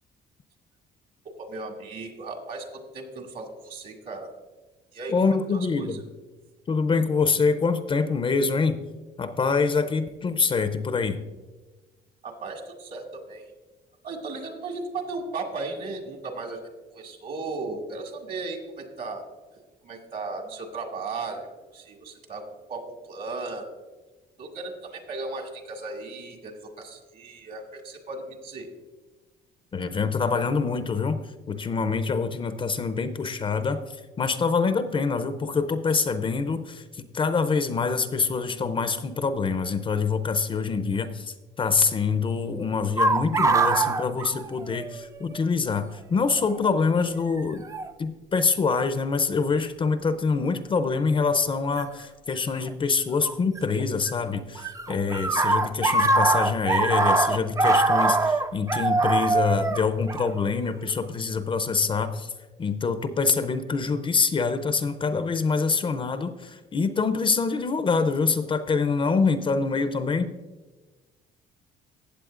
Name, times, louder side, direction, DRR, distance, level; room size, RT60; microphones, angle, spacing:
voice 1, 1.4-4.3 4.9-5.1 5.8-5.9 12.2-13.5 14.0-16.6 16.9-19.2 19.8-21.5 21.7-22.4 22.7-23.6 24.4-28.7, right 3 dB, 55° right, 3 dB, 1.9 m, -36 dB
voice 2, 5.1-6.0 6.7-8.8 9.2-11.2 29.7-31.2 31.5-47.7 48.0-62.3 62.6-70.3, left 4 dB, 30° left, 10 dB, 0.5 m, -25 dB
sound 1, 43.0-45.1 45.3-45.4 46.4-46.7 47.7-47.9 48.7-49.1 51.8-51.9 53.2-54.1 54.4-60.9, right 3 dB, 20° right, 0.4 m, -23 dB
15.0 x 8.1 x 2.5 m, 1.2 s
cardioid pair, 110°, 17 cm